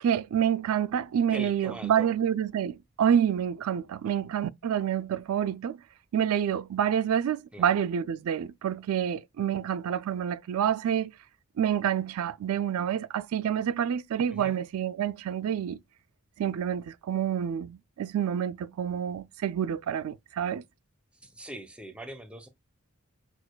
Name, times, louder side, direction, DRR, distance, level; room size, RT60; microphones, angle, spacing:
voice 1, 0.0-5.8 6.1-11.1 11.6-15.8 16.4-20.6, right 9 dB, 80° right, 0.3 m, -28 dB
voice 2, 1.3-2.1 7.5-7.7 14.3-14.6 21.1-22.5, right 1 dB, 5° right, 0.5 m, -42 dB
6.3 x 2.5 x 2.2 m
head